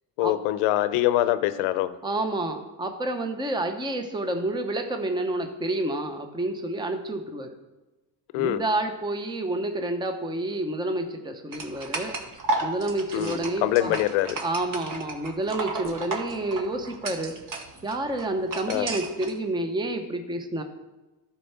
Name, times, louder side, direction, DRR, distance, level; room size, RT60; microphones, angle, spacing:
voice 1, 0.2-1.9 8.3-8.6 13.1-14.4 18.7-18.9, left 14 dB, 80° left, 13 dB, 0.8 m, -24 dB
voice 2, 2.0-7.5 8.3-12.1 12.6-14.0 14.4-17.3 17.8-20.6, right 2 dB, 10° right, 6 dB, 0.8 m, -29 dB
sound 1, 11.5-19.3, right 2 dB, 40° right, 1.3 m, -34 dB
11.0 x 4.5 x 5.8 m, 1.1 s
supercardioid pair, 100°, 48 cm